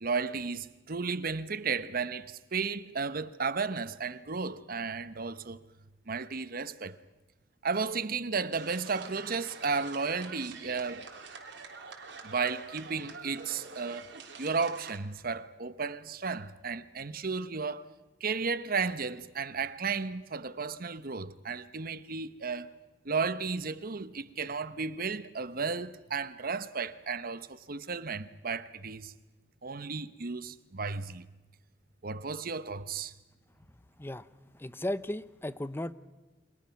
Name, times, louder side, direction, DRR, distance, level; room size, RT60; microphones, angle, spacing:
voice 1, 0.0-5.6 6.1-7.0 7.6-11.0 12.2-14.1 14.4-17.9 18.2-22.7 23.0-29.1 29.6-31.3 32.0-33.1, right 5 dB, 50° right, 1.0 m, -34 dB
sound 1, 8.5-15.0, right 4 dB, 70° right, 3.5 m, -47 dB
voice 2, 34.6-35.9, left 1 dB, 10° left, 0.7 m, -35 dB
30.0 x 25.5 x 6.0 m
head